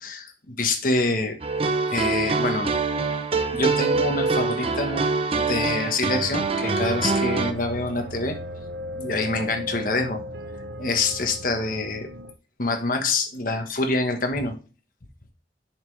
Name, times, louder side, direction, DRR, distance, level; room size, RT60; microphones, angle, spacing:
voice 1, 0.0-1.4 1.9-2.7 3.5-5.0 5.3-8.4 8.9-10.2 10.8-12.1 12.6-14.6, left 3 dB, 50° left, 5 dB, 1.2 m, -26 dB
sound 1, 1.4-7.5, right 3 dB, 35° right, 0.6 m, -24 dB
sound 2, 6.0-12.3, equal, 75° right, 0.7 m, -37 dB
7.9 x 6.0 x 3.3 m, 0.36 s
head